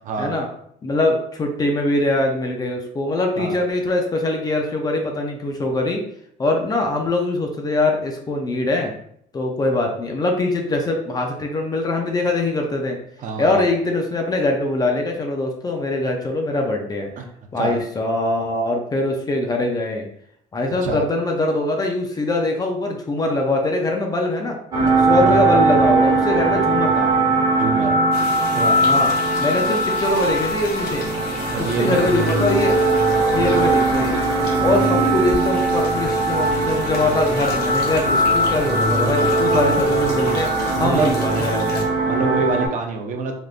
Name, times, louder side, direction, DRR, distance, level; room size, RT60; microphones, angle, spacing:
voice 1, 0.8-6.0 6.4-8.9 9.3-13.0 13.4-17.1 17.5-20.1 20.5-24.6 25.1-27.1 28.8-29.1 29.4-31.0 31.6-32.9 33.3-34.2 34.6-40.5 40.8-41.9, left 2 dB, 20° left, 2 dB, 0.4 m, -22 dB
voice 2, 13.2-13.7 17.2-17.3 17.6-17.8 20.8-21.0 25.3-25.4 27.6-28.0 28.5-28.8 31.5-32.3 40.7-41.1 42.1-43.3, right 4 dB, 45° right, 3 dB, 0.5 m, -25 dB
sound 1, 24.7-42.7, right 2 dB, 25° right, 1.3 m, -20 dB
sound 2, 28.1-41.8, left 3 dB, 65° left, 0.8 m, -36 dB
3.5 x 2.5 x 2.4 m, 0.69 s
cardioid pair, 135°, 17 cm